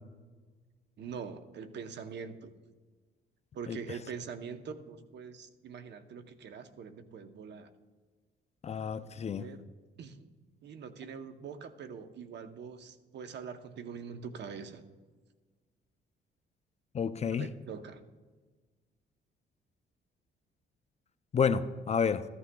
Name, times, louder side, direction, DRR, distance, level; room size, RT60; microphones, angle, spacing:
voice 1, 1.0-2.5 3.5-7.7 9.4-9.7 10.0-10.3 10.6-14.9 17.4-18.0, right 6 dB, 60° right, 9 dB, 0.8 m, -43 dB
voice 2, 8.6-9.5 16.9-17.5 21.3-22.3, left 6 dB, 35° left, 13 dB, 0.4 m, -30 dB
14.0 x 11.5 x 2.2 m, 1.4 s
cardioid pair, 90°, 20 cm